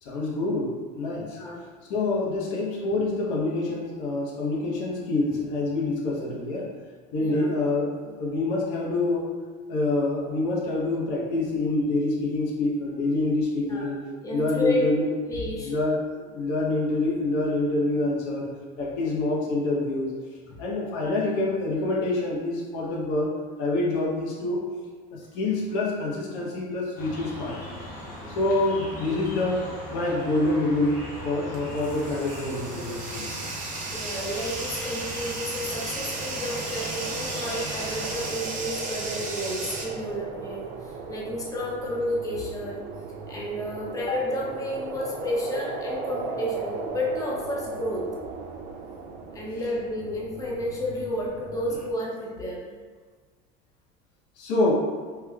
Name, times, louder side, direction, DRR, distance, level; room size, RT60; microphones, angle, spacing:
voice 1, 0.0-1.4 1.9-6.7 7.1-9.3 9.7-14.0 14.3-15.0 15.6-20.1 20.6-24.6 25.1-27.8 28.3-33.3 54.4-55.0, left 2 dB, 75° left, -3 dB, 0.8 m, -26 dB
voice 2, 1.4-1.7 7.2-7.5 13.6-14.0 14.2-14.9 15.2-15.7 21.0-21.2 28.2-28.5 33.9-42.8 43.3-48.0 49.3-52.7, left 1 dB, 15° left, -3 dB, 0.6 m, -31 dB
sound 1, 27.0-38.3, equal, 40° left, 0.9 m, -39 dB
Bathtub (filling or washing), 30.7-39.9, right 3 dB, 40° right, 0.8 m, -35 dB
sound 2, 35.0-51.9, right 4 dB, 60° right, 0.4 m, -38 dB
3.2 x 3.1 x 2.3 m, 1.5 s
supercardioid pair, 115°, 21 cm